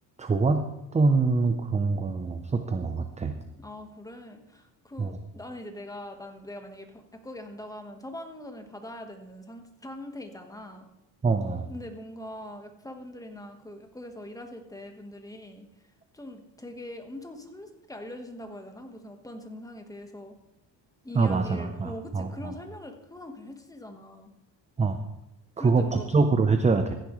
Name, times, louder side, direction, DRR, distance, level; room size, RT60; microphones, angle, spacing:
voice 1, 0.2-0.7 0.9-3.3 5.0-5.1 11.2-11.7 21.1-22.5 24.8-25.0 25.6-26.9, right 4 dB, 15° right, 7 dB, 0.5 m, -24 dB
voice 2, 3.6-10.9 11.7-15.7 16.1-20.3 21.0-24.3 25.6-26.1, left 1 dB, 10° left, 5 dB, 1.2 m, -42 dB
15.0 x 10.5 x 3.1 m, 0.89 s
cardioid pair, 125°, 45 cm